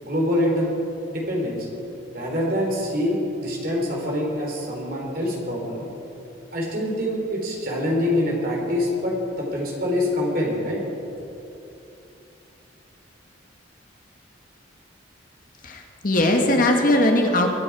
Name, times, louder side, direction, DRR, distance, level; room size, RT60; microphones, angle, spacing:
voice 1, 0.0-0.7 1.1-1.7 2.1-5.9 6.5-10.8, left 1 dB, 50° right, -2 dB, 3.8 m, -25 dB
voice 2, 15.6-17.5, left 1 dB, 45° left, 2 dB, 1.6 m, -19 dB
23.0 x 10.0 x 4.8 m, 2.7 s
head